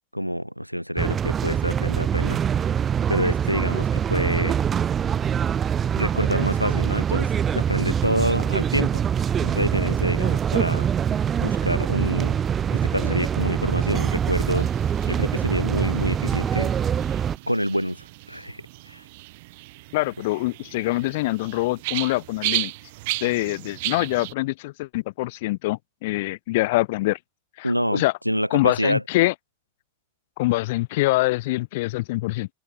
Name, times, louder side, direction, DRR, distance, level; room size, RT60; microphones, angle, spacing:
voice 1, 0.1-2.4 3.1-4.6 6.0-9.0 9.4-10.9 11.4-12.4 12.7-14.7 15.0-16.7 17.5-19.0 27.6-29.0, equal, 90° right, 5.9 m, -27 dB
sound 1, 1.0-17.4, right 8 dB, 25° right, 0.5 m, -24 dB
sound 2, 14.1-24.3, right 22 dB, 50° right, 3.7 m, -35 dB
voice 2, 19.9-22.7 23.2-27.2 27.6-28.1 28.5-29.3 30.4-32.5, left 20 dB, 50° left, 2.4 m, -24 dB
open air
figure-of-eight pair, 90°, 0 cm